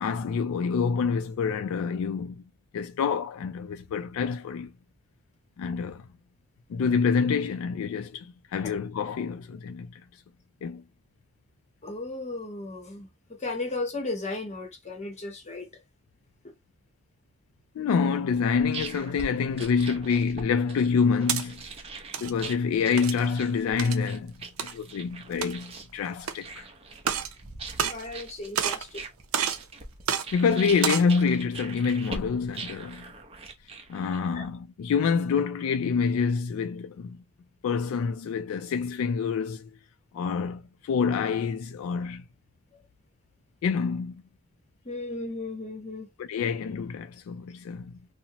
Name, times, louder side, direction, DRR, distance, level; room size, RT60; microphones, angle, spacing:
voice 1, 0.0-2.4 2.7-4.7 5.6-6.0 6.7-9.9 10.6-10.8 17.8-21.6 22.2-24.3 24.6-26.6 30.3-33.1 33.9-37.2 37.6-39.7 40.1-42.2 43.6-44.2 46.2-47.9, left 5 dB, 85° left, 0.3 m, -27 dB
voice 2, 11.8-15.7 27.8-29.0 34.3-34.5 44.8-46.1, left 2 dB, 35° left, 0.8 m, -35 dB
sound 1, 18.3-34.4, right 3 dB, 30° right, 0.6 m, -42 dB
sound 2, 20.9-21.4 22.0-22.3 23.0-23.3 23.8-24.0 24.6-24.7 25.3-25.7 26.2-26.3 27.0-27.3 27.7-28.3 28.6-28.9 29.3-29.6 30.1-30.2 30.7-31.1, right 8 dB, 85° right, 0.4 m, -29 dB
2.8 x 2.0 x 2.8 m
head